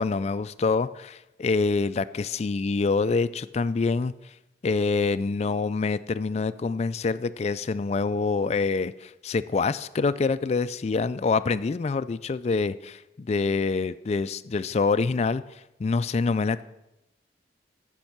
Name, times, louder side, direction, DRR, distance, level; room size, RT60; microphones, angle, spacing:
voice 1, 0.0-4.1 4.6-15.4 15.8-16.6, left 4 dB, 35° left, 13 dB, 0.3 m, -26 dB
13.5 x 5.4 x 6.0 m, 0.95 s
head